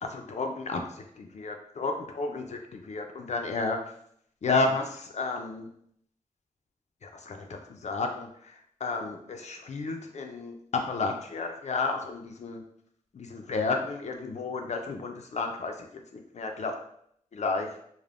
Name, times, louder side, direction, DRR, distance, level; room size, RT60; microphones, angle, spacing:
voice 1, 0.0-0.8 1.2-3.8 4.4-5.7 7.0-8.5 8.8-12.6 13.1-15.9 16.1-16.7 17.3-17.7, left 3 dB, 55° left, 4 dB, 0.4 m, -32 dB
3.3 x 2.1 x 2.4 m, 0.69 s
wide cardioid pair, 85°, 14 cm